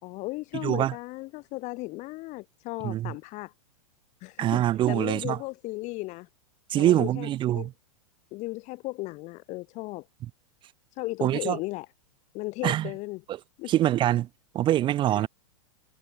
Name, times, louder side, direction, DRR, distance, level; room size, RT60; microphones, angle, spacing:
voice 1, 0.0-3.5 4.2-4.6 4.9-6.3 6.8-7.7 8.3-10.1 11.0-11.9 12.3-13.2 13.6-13.7 15.1-15.3, left 22 dB, 40° left, 3.9 m, -36 dB
voice 2, 0.6-0.9 2.8-3.1 4.4-5.4 6.7-7.7 11.2-11.6 12.6-12.9 13.3-13.4 13.7-14.3 14.5-15.3, right 13 dB, 25° right, 0.8 m, -24 dB
hypercardioid pair, 125°, 18 cm